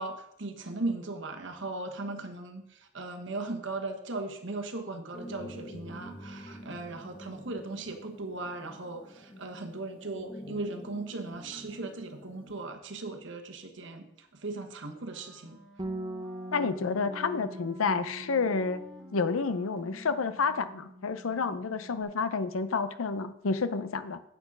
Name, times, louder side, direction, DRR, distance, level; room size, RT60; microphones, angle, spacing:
voice 1, 0.0-14.1 14.3-15.6, right 2 dB, 65° right, 4 dB, 1.1 m, -38 dB
sound 1, 5.1-12.6, equal, 25° left, 1.1 m, -47 dB
Wind instrument woodwind instrument, 15.0-21.2, right 1 dB, ahead, 2.2 m, -52 dB
Bass guitar, 15.8-22.0, right 1 dB, 20° right, 0.6 m, -43 dB
voice 2, 16.5-18.8 19.1-24.2, left 4 dB, 85° left, 11 dB, 0.6 m, -29 dB
8.2 x 6.0 x 5.4 m, 0.77 s
head